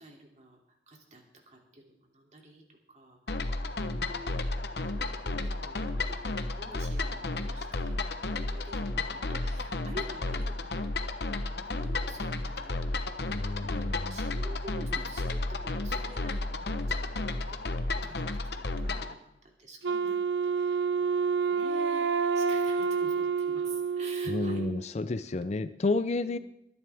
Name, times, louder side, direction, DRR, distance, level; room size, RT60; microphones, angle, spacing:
voice 1, 0.0-3.5 3.8-4.5 4.9-11.0 11.4-13.2 13.6-21.1 21.5-24.7 26.3-26.4, right 1 dB, 40° right, 1 dB, 2.8 m, -49 dB
sound 1, 3.3-19.1, left 2 dB, 60° left, 1.0 m, -32 dB
voice 2, 13.3-14.2 24.3-26.4, left 3 dB, 40° left, 12 dB, 0.5 m, -31 dB
Wind instrument woodwind instrument, 19.8-24.8, right 5 dB, 80° right, 0.6 m, -28 dB
22.0 x 11.0 x 3.5 m, 0.85 s
head